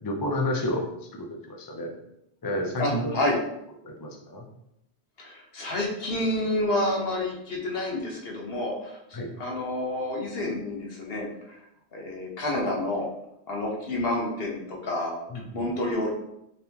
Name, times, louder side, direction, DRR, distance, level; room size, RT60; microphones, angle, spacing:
voice 1, 0.0-0.9 1.1-1.9 2.4-3.2 3.8-4.5 9.1-9.3 15.3-15.7, left 1 dB, 30° left, 1 dB, 0.4 m, -30 dB
voice 2, 2.8-3.4 5.2-9.0 9.4-11.6 11.9-13.1 13.5-15.1 15.5-16.1, left 1 dB, 65° left, -1 dB, 1.1 m, -29 dB
4.0 x 3.5 x 2.9 m, 0.81 s
omnidirectional pair, 1.1 m